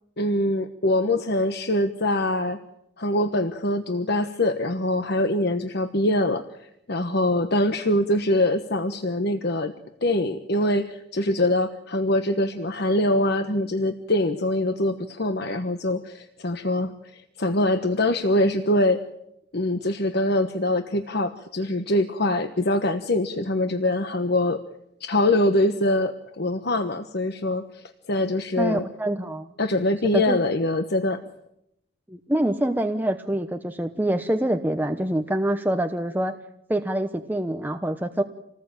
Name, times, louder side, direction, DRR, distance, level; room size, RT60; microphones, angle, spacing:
voice 1, 0.2-2.6 3.0-9.7 10.0-19.0 19.5-24.6 25.0-28.8 29.6-31.2, left 1 dB, 55° left, 8 dB, 1.2 m, -24 dB
voice 2, 28.6-29.5 30.1-30.5 32.1-36.4 36.7-38.2, right 1 dB, 10° right, 6 dB, 1.0 m, -25 dB
27.0 x 19.5 x 9.0 m, 0.82 s
head